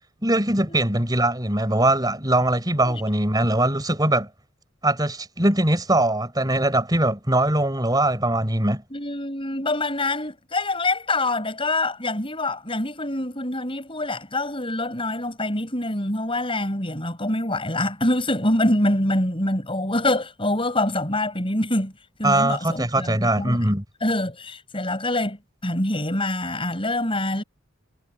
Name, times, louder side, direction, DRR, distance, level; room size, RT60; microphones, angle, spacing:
voice 1, 0.2-4.3 4.8-8.8 22.2-23.8, right 1 dB, 20° right, 4.8 m, -21 dB
voice 2, 8.9-21.9 22.2-23.6 24.0-27.4, left 1 dB, 25° left, 7.7 m, -25 dB
head